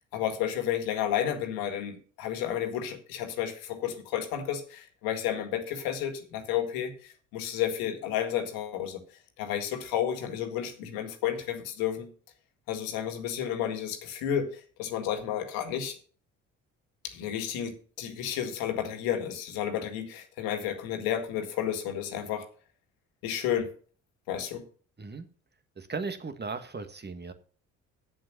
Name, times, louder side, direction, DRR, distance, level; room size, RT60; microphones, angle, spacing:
voice 1, 0.1-9.0 9.4-12.1 12.7-16.0 17.0-22.5 23.2-23.7 24.3-24.6, left 10 dB, 80° left, 6 dB, 1.9 m, -31 dB
voice 2, 25.8-27.3, right 4 dB, 30° right, 9 dB, 1.6 m, -36 dB
7.7 x 7.6 x 6.7 m, 0.41 s
hypercardioid pair, 60°, 35 cm